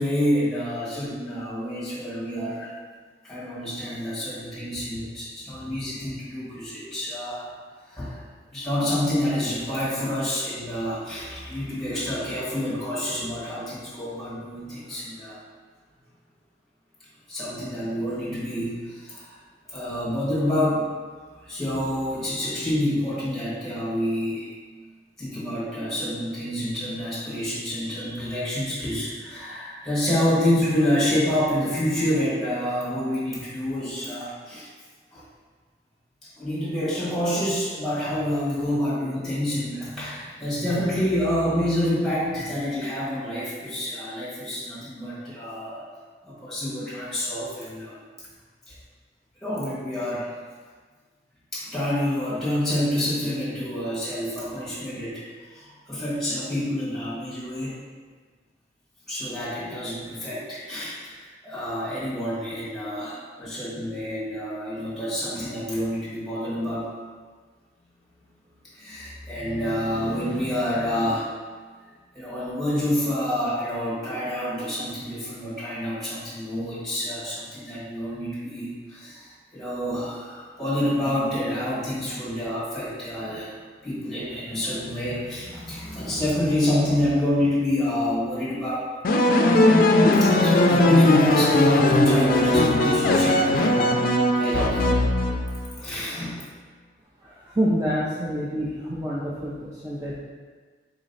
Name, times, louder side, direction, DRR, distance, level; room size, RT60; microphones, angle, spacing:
voice 1, 0.0-2.7 3.2-7.5 7.9-8.2 8.5-15.4 17.3-19.4 19.7-21.0 21.4-24.5 25.2-34.7 35.1-35.2 36.2-45.8 46.2-48.0 48.7-48.8 49.4-50.3 51.5-55.2 55.5-57.8 59.1-66.9 68.7-71.3 72.1-83.5 83.8-88.9 90.2-93.9 94.3-94.9 95.6-96.5, left 1 dB, ahead, -10 dB, 1.5 m, -28 dB
sound 1, 89.0-95.7, left 1 dB, 50° left, 0.4 m, -19 dB
voice 2, 97.2-100.1, equal, 20° right, -7 dB, 0.4 m, -27 dB
3.8 x 3.1 x 4.0 m, 1.5 s
head